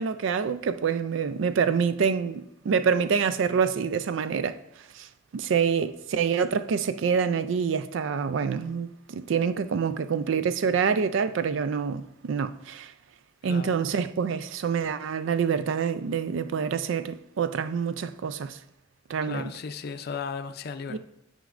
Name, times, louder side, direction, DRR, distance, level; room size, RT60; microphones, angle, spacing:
voice 1, 0.0-4.6 4.9-12.9 13.4-18.6 19.1-19.5 20.9-21.0, right 6 dB, 75° right, 0.4 m, -26 dB
voice 2, 19.2-21.0, left 5 dB, 55° left, 0.4 m, -35 dB
9.1 x 5.2 x 2.5 m
head